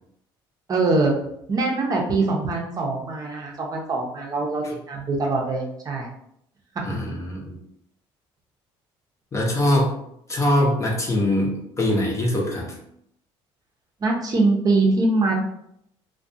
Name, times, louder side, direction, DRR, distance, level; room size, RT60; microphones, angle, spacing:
voice 1, 0.7-1.1 1.5-6.1 14.0-15.4, right 3 dB, 35° right, -1 dB, 0.6 m, -23 dB
voice 2, 6.8-7.6 9.3-10.0 10.3-12.7, left 1 dB, 30° left, -2 dB, 0.7 m, -22 dB
2.3 x 2.2 x 2.6 m, 0.73 s
cardioid pair, 100°, 11 cm